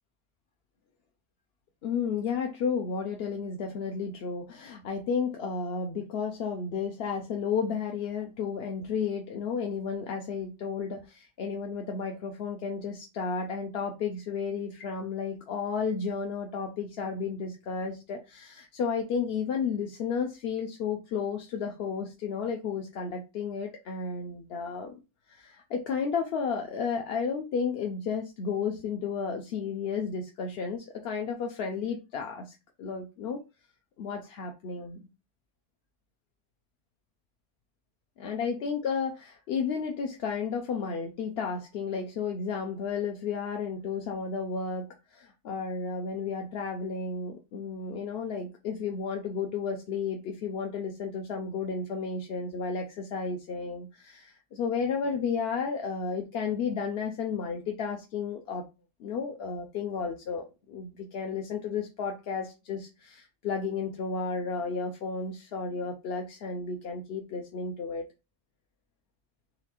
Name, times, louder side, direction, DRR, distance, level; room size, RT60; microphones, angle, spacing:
voice 1, 1.8-25.0 25.3-33.4 34.0-35.0 38.2-58.6 59.0-68.0, left 5 dB, 65° left, 3 dB, 0.8 m, -32 dB
4.0 x 3.1 x 2.9 m, 0.27 s
omnidirectional pair, 1.1 m